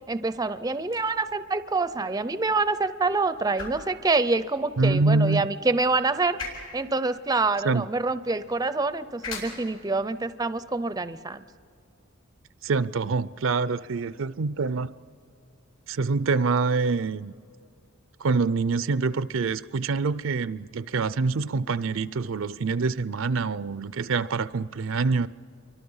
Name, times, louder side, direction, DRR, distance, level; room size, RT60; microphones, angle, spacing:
voice 1, 0.1-6.4 6.7-11.4, right 3 dB, 20° right, 0.5 m, -26 dB
sound 1, 0.8-12.8, left 4 dB, 85° left, 7.0 m, -45 dB
voice 2, 4.8-5.5 7.6-7.8 12.6-14.9 15.9-17.3 18.2-25.3, right 4 dB, 70° right, 0.5 m, -25 dB
29.0 x 24.0 x 5.6 m
head